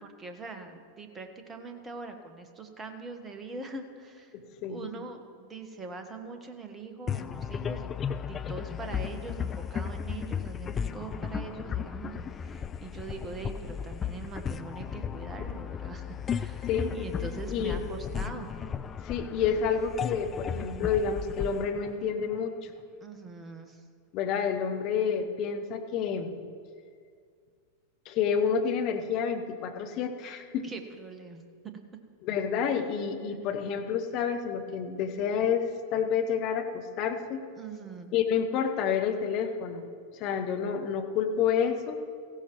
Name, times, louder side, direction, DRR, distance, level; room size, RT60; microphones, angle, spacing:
voice 1, 0.0-4.3 4.7-8.0 8.3-18.5 23.0-23.8 30.2-32.0 33.3-33.4 37.5-38.1, right 4 dB, 20° right, 6 dB, 1.3 m, -42 dB
voice 2, 4.3-4.9 16.7-17.0 17.5-17.8 19.0-22.5 24.1-26.4 28.0-30.7 32.2-37.4 38.1-39.8 40.2-42.0, left 7 dB, 40° left, 5 dB, 1.1 m, -29 dB
sound 1, 7.1-22.7, left 7 dB, 20° left, 0.4 m, -35 dB
17.5 x 15.5 x 3.1 m, 2.2 s
figure-of-eight pair, 90°, 0 cm